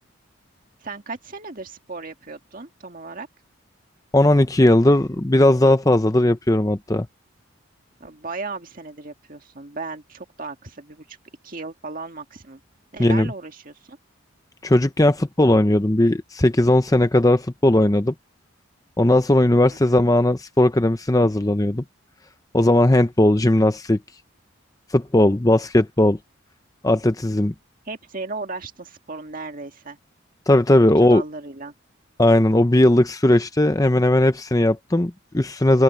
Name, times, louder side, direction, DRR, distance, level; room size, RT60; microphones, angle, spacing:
voice 1, 0.8-3.3 8.0-11.2 11.4-12.6 12.9-14.0 19.7-20.0 27.9-30.0 31.0-31.7, right 3 dB, 40° right, 2.0 m, -36 dB
voice 2, 4.1-7.1 13.0-13.3 14.6-18.1 19.0-21.8 22.5-24.0 24.9-26.2 26.8-27.5 30.5-31.2 32.2-35.8, left 1 dB, 15° left, 0.7 m, -17 dB
open air
head